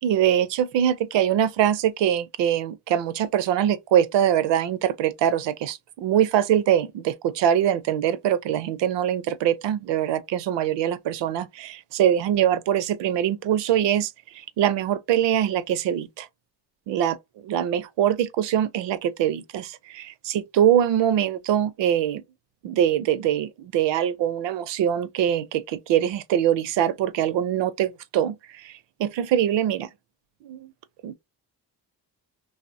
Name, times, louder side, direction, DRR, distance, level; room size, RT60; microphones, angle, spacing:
voice 1, 0.0-14.1 14.6-16.3 16.9-17.2 17.4-22.2 22.6-28.7 29.0-29.9 30.4-30.7 31.0-31.2, right 10 dB, 75° right, 0.5 m, -23 dB
2.9 x 2.1 x 2.6 m
cardioid pair, 115°, 44 cm